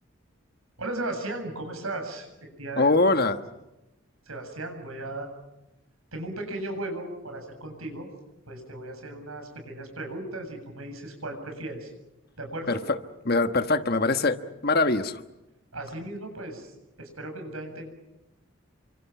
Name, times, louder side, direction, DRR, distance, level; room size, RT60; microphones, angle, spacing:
voice 1, 0.8-3.1 4.3-5.3 6.1-8.1 8.5-11.9 12.4-12.8 15.7-16.7 17.0-17.9, right 2 dB, 85° right, 5 dB, 7.6 m, -36 dB
voice 2, 2.8-3.4 12.7-13.0 13.2-15.2, left 3 dB, 45° left, 9 dB, 1.4 m, -23 dB
29.5 x 25.5 x 6.1 m, 0.96 s
head